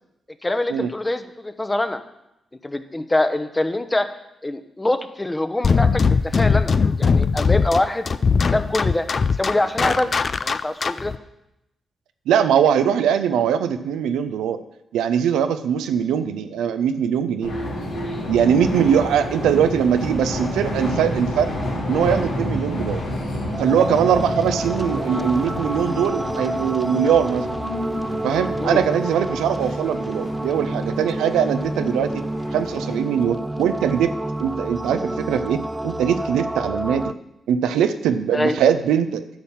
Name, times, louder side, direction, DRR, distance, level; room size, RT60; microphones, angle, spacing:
voice 1, 0.4-2.0 2.6-4.1 4.4-8.1 8.5-9.1 9.4-10.1 10.4-11.1 28.6-28.8 38.3-38.6, left 1 dB, 20° left, 10 dB, 1.0 m, -24 dB
sound 1, 5.6-11.2, left 5 dB, 55° left, 0.5 m, -20 dB
voice 2, 12.3-14.6 14.9-17.5 18.3-21.5 21.9-23.0 23.6-27.5 28.2-32.2 32.5-37.1 37.5-39.2, right 8 dB, 85° right, 9 dB, 0.5 m, -21 dB
sound 2, 17.4-33.0, left 1 dB, 85° left, 2.8 m, -29 dB
sound 3, 23.5-37.1, right 1 dB, 15° right, 0.4 m, -29 dB
10.5 x 5.6 x 7.2 m, 0.87 s
supercardioid pair, 45°, 0 cm